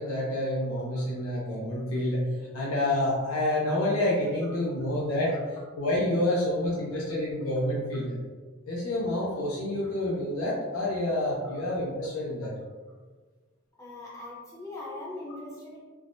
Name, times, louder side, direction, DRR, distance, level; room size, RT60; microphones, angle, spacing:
voice 1, 0.0-2.3 2.5-5.3 5.8-8.2 8.7-12.5, left 1 dB, 85° left, -5 dB, 0.5 m, -28 dB
voice 2, 13.8-15.8, left 2 dB, 15° left, -5 dB, 0.6 m, -41 dB
3.3 x 2.0 x 2.5 m, 1.4 s
head